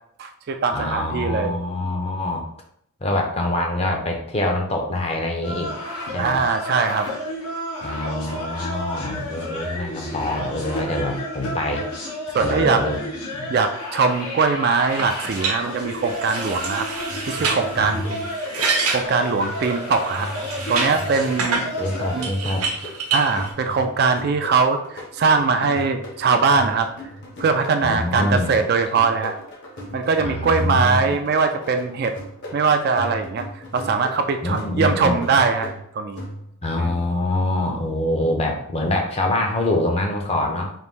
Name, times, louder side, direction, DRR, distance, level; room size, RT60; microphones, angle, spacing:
voice 1, 0.2-1.6 6.2-7.1 12.3-12.8 13.5-16.9 17.3-18.0 18.6-18.7 18.9-20.3 20.7-21.6 22.1-22.3 23.1-26.9 27.4-29.4 29.9-32.1 32.5-33.5 33.7-36.2 36.8-37.0, right 4 dB, 45° right, 6 dB, 0.3 m, -21 dB
voice 2, 0.7-2.5 3.0-5.7 6.1-6.4 7.8-11.8 12.4-13.1 13.3-13.5 17.8-18.2 21.8-22.6 27.8-28.6 30.2-31.0 34.4-35.2 36.6-40.7, left 1 dB, 25° left, 2 dB, 0.6 m, -25 dB
sound 1, 5.4-22.3, left 1 dB, 90° left, 1.2 m, -32 dB
sound 2, 14.9-21.7 22.2-23.5, right 4 dB, 90° right, 0.7 m, -28 dB
sound 3, 17.1-36.8, left 1 dB, 50° left, 0.9 m, -38 dB
3.9 x 2.6 x 3.6 m, 0.69 s
head